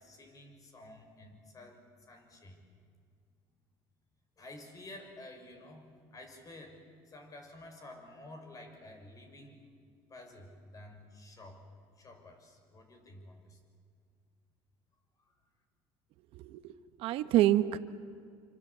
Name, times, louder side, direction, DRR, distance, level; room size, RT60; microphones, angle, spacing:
voice 1, 0.0-2.7 4.4-5.9 6.1-9.6 10.1-11.7 12.0-13.6 15.2-15.3, left 1 dB, 35° left, 5 dB, 6.5 m, -51 dB
voice 2, 16.3-16.7 17.0-17.8, right 13 dB, 70° right, 11 dB, 1.2 m, -27 dB
27.5 x 25.0 x 8.6 m, 2.2 s
cardioid pair, 105°, 10 cm